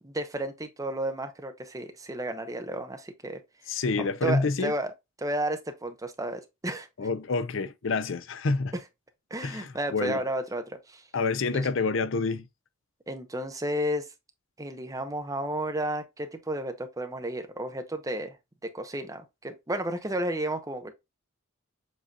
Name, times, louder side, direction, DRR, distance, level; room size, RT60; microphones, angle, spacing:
voice 1, 0.0-3.4 4.0-4.9 5.2-6.9 9.3-11.0 11.5-11.7 13.1-14.1 14.6-18.4 18.7-20.9, right 1 dB, 15° right, 0.7 m, -32 dB
voice 2, 3.7-4.7 7.0-8.7 9.4-10.2 11.1-12.4, left 4 dB, 60° left, 0.5 m, -28 dB
7.4 x 2.8 x 2.4 m
head